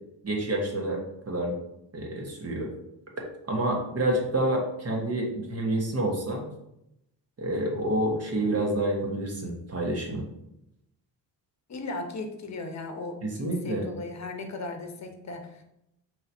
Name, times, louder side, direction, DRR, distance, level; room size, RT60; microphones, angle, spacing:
voice 1, 0.2-1.5 1.9-2.7 3.5-6.4 7.4-10.2 13.2-13.9, right 1 dB, 35° right, 0 dB, 1.4 m, -28 dB
voice 2, 11.7-15.6, left 3 dB, 40° left, 4 dB, 1.0 m, -37 dB
5.5 x 3.1 x 2.8 m, 0.81 s
cardioid pair, 85°, 44 cm